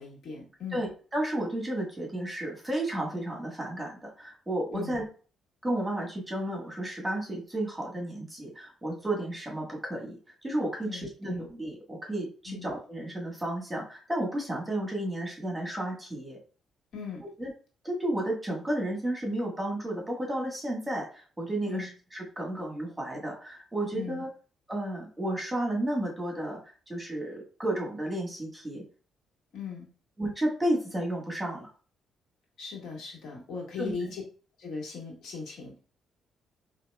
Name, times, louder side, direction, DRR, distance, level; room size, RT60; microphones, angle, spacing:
voice 1, 0.0-0.8 4.7-5.0 10.8-11.4 12.5-12.7 16.9-17.2 21.7-21.9 23.9-24.2 29.5-29.9 32.6-34.2 34.6-35.8, left 5 dB, 70° left, -3 dB, 1.6 m, -39 dB
voice 2, 0.7-5.0 5.6-16.4 17.4-17.5 17.8-24.3 24.7-26.6 26.9-28.8 30.2-31.7 33.8-34.1, right 1 dB, 15° right, -1 dB, 1.4 m, -32 dB
4.9 x 2.6 x 2.3 m, 0.38 s
cardioid pair, 90°, 0 cm